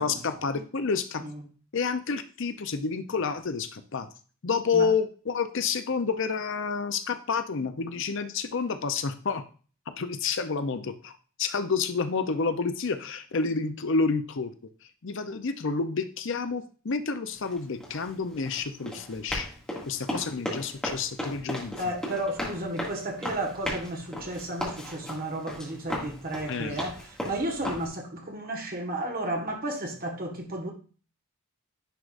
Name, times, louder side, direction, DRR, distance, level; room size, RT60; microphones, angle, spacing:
voice 1, 0.0-1.2 1.7-4.1 4.4-9.4 9.9-14.5 15.0-19.5 19.9-21.8 26.5-26.8, left 5 dB, 65° left, 0.7 m, -29 dB
Run, 17.3-27.9, equal, 5° left, 2.1 m, -36 dB
voice 2, 21.8-30.7, right 1 dB, 45° right, 1.6 m, -33 dB
10.0 x 4.7 x 2.5 m
head